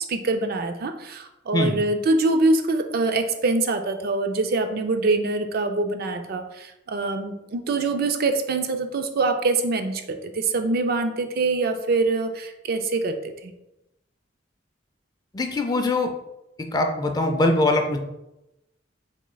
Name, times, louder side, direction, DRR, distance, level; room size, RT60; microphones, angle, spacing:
voice 1, 0.1-13.2 13.4-13.5, right 3 dB, 50° right, 7 dB, 0.4 m, -24 dB
voice 2, 15.3-16.1 16.7-18.0, left 2 dB, 20° left, 5 dB, 0.4 m, -22 dB
6.2 x 3.7 x 2.2 m, 0.93 s
head